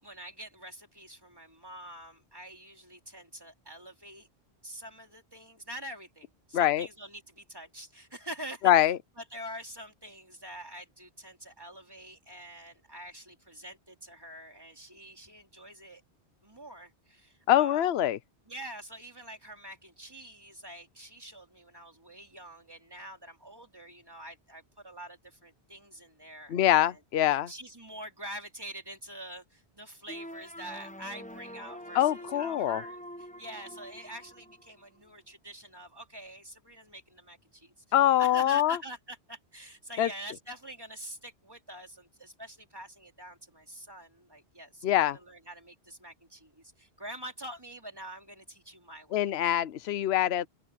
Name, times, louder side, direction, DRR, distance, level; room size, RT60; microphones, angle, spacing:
voice 1, 0.0-4.3 4.6-8.7 9.2-16.0 16.4-17.9 18.5-27.0 27.5-37.8 38.2-49.6, right 1 dB, 20° right, 3.7 m, -46 dB
voice 2, 6.5-6.9 8.6-9.0 17.5-18.2 26.5-27.5 31.9-32.8 37.9-38.8 40.0-40.1 44.8-45.2 49.1-50.5, left 12 dB, 75° left, 0.9 m, -24 dB
sound 1, 30.1-35.1, equal, 10° left, 1.0 m, -45 dB
open air
omnidirectional pair, 1.1 m